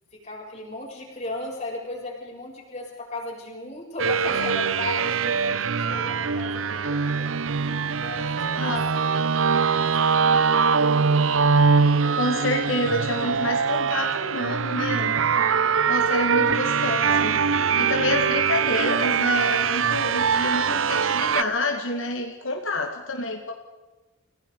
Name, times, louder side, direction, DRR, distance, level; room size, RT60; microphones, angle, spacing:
voice 1, 0.1-7.3 7.9-11.3 16.2-16.4, left 2 dB, 35° left, -2 dB, 6.6 m, -37 dB
sound 1, 4.0-21.4, right 5 dB, 85° right, 0.7 m, -22 dB
voice 2, 12.1-15.2 15.9-17.4 17.7-23.5, left 2 dB, 85° left, 2 dB, 2.3 m, -28 dB
29.5 x 18.0 x 4.9 m, 1.1 s
head